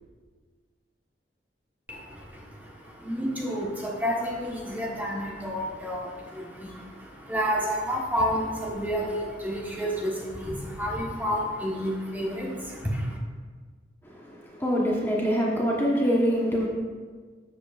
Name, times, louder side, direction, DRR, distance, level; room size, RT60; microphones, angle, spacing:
voice 1, 1.9-13.2, equal, 10° right, -3 dB, 1.2 m, -30 dB
voice 2, 14.0-16.7, equal, 15° left, -3 dB, 1.1 m, -25 dB
12.5 x 8.0 x 2.5 m, 1.5 s
head